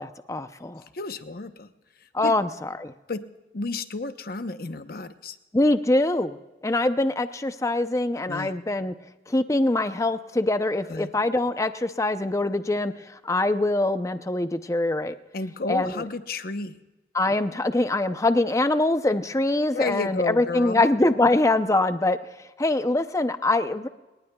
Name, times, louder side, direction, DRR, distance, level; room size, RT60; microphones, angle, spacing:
voice 1, 0.0-0.8 2.1-2.5 2.8-2.9 5.5-6.4 6.6-8.9 9.3-12.9 13.2-15.1 15.7-16.0 17.1-22.2 22.6-23.9, left 2 dB, 20° left, 10 dB, 0.6 m, -23 dB
voice 2, 0.9-1.7 2.0-2.3 3.1-3.2 3.5-5.4 8.2-8.5 10.9-11.1 15.3-16.7 19.7-20.8, left 3 dB, 55° left, 9 dB, 0.9 m, -31 dB
29.5 x 19.0 x 2.3 m, 1.1 s
head